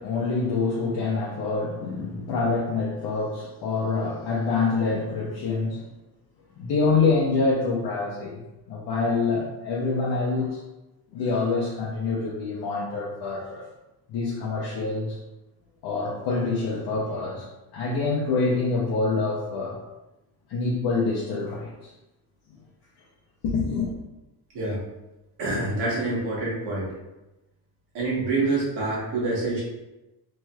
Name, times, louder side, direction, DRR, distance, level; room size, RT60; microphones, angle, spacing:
voice 1, 0.0-5.8 6.6-8.4 8.7-10.6 11.1-13.6 14.1-15.2 15.8-17.5 17.7-19.8 20.5-21.9 23.4-23.9, left 4 dB, 65° left, -6 dB, 0.7 m, -26 dB
voice 2, 25.4-26.9 27.9-29.6, right 2 dB, 75° right, -5 dB, 1.4 m, -26 dB
3.1 x 3.0 x 2.3 m, 1.0 s
cardioid pair, 150°, 42 cm